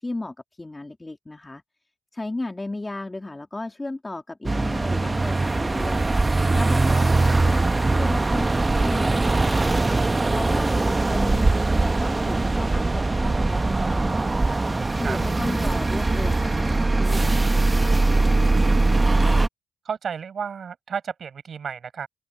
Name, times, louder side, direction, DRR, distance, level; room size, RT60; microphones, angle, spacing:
voice 1, 0.0-1.6 2.1-9.9 10.3-11.6 11.8-18.3, left 2 dB, 15° left, 3.1 m, -35 dB
sound 1, 4.4-19.5, right 2 dB, 20° right, 1.2 m, -21 dB
voice 2, 6.9-7.4 14.7-15.2 19.8-22.1, right 6 dB, 50° right, 6.3 m, -33 dB
open air
cardioid pair, 90°, 0 cm